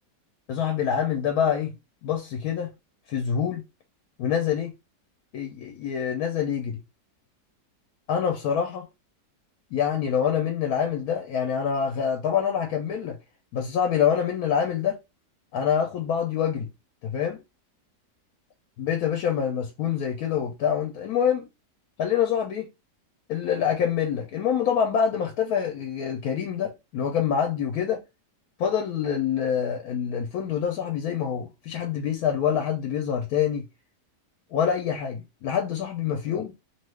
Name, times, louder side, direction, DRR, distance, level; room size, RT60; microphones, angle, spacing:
voice 1, 0.5-1.7 2.0-2.7 3.1-3.6 4.2-4.7 5.3-6.8 8.1-8.9 9.7-13.2 13.5-15.0 15.5-16.7 17.0-17.4 18.8-21.5 22.0-22.7 23.3-28.0 28.6-33.7 34.5-36.5, left 8 dB, 70° left, 1.0 m, -26 dB
2.9 x 2.3 x 3.1 m
omnidirectional pair, 1.8 m